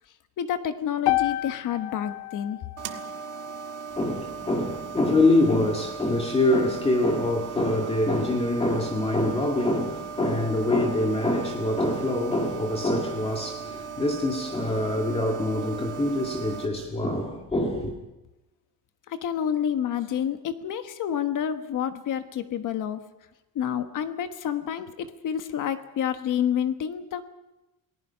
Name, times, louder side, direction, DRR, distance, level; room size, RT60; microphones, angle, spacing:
voice 1, 0.4-2.6 19.1-23.0 23.5-27.2, left 9 dB, 55° left, 1.3 m, -29 dB
sound 1, 1.1-5.2, left 17 dB, 85° left, 0.9 m, -32 dB
sound 2, 2.8-16.7, right 7 dB, 55° right, 1.7 m, -38 dB
voice 2, 4.0-17.9, left 1 dB, 15° left, 2.0 m, -25 dB
28.5 x 19.0 x 5.7 m
cardioid pair, 165°, 37 cm